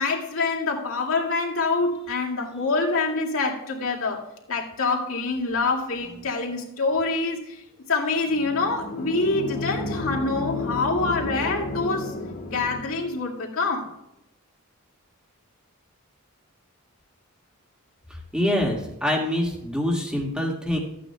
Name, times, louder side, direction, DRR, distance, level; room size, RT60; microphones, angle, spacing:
voice 1, 0.0-4.2 4.5-7.6 7.9-12.2 12.5-13.9, left 3 dB, 65° left, 0 dB, 2.2 m, -26 dB
sound 1, 8.3-13.2, left 2 dB, 45° left, 1.8 m, -32 dB
voice 2, 18.3-20.8, left 1 dB, 5° right, 0 dB, 1.8 m, -25 dB
14.5 x 9.0 x 2.3 m, 0.86 s
head